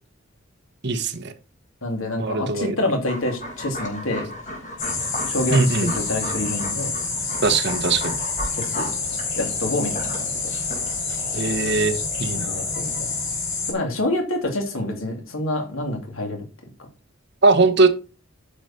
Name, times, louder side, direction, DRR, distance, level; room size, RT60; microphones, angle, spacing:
voice 1, 0.8-1.3 2.2-2.7 5.5-5.9 7.4-8.2 11.3-12.6 17.4-17.9, right 3 dB, 60° right, 9 dB, 1.3 m, -20 dB
voice 2, 1.8-4.3 5.3-6.9 8.5-8.9 9.4-10.3 12.3-13.1 13.7-16.4, left 1 dB, 90° left, 3 dB, 2.9 m, -27 dB
sound 1, 3.0-11.7, left 1 dB, 40° left, 4.5 m, -35 dB
sound 2, 4.8-13.7, left 4 dB, 65° left, 4.7 m, -28 dB
9.9 x 6.7 x 4.4 m, 0.35 s
head